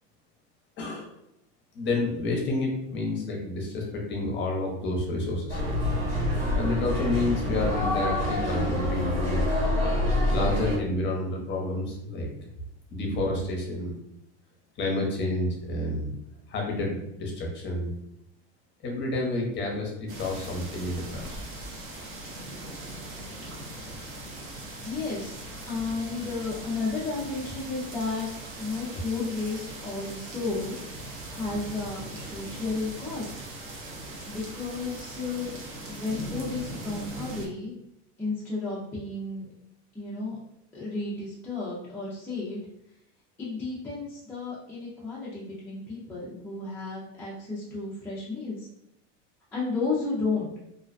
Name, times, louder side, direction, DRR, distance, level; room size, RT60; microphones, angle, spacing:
voice 1, 0.8-1.1 1.7-5.6 6.5-9.5 10.3-12.3 12.9-13.9 14.8-16.1 16.5-17.9 18.8-21.4, left 2 dB, 30° left, 0 dB, 0.7 m, -29 dB
sound 1, 5.5-10.8, left 1 dB, 75° right, 1.4 m, -26 dB
sound 2, 20.1-37.5, right 1 dB, 40° right, 0.6 m, -40 dB
voice 2, 24.8-25.4 25.7-28.3 28.6-30.8 31.3-33.3 34.3-35.5 35.9-37.7 38.2-39.5 39.9-40.4 40.7-42.6 43.4-48.7 49.5-50.5, left 3 dB, 5° left, -7 dB, 0.3 m, -32 dB
2.5 x 2.1 x 2.4 m, 0.80 s
supercardioid pair, 125°, 34 cm